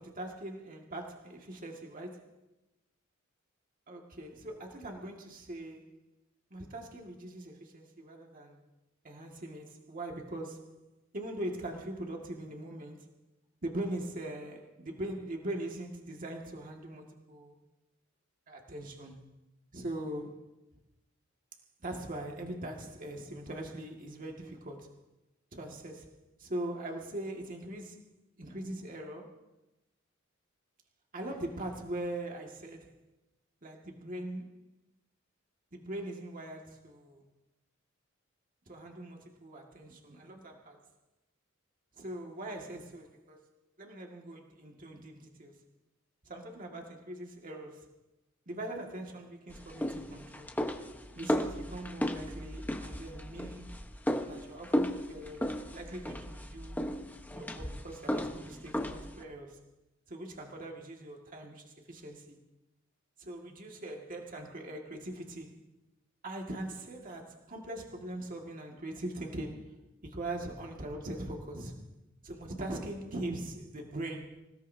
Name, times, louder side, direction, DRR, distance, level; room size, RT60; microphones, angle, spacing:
voice 1, 0.0-2.3 3.9-6.0 6.5-8.6 9.0-10.8 11.1-13.1 13.6-17.6 18.5-19.2 19.7-20.5 21.8-25.0 25.5-28.0 28.4-29.4 31.1-33.0 33.6-34.6 35.7-37.2 38.7-40.8 41.9-43.4 43.8-45.6 46.2-47.9 48.5-50.5 51.2-53.8 54.3-56.8 57.4-59.6 60.1-62.4 63.2-65.6 66.2-71.8 72.2-74.4, right 1 dB, 40° right, 2.1 m, -41 dB
sound 1, 49.5-59.2, equal, 10° left, 1.2 m, -35 dB
27.0 x 17.0 x 2.8 m
head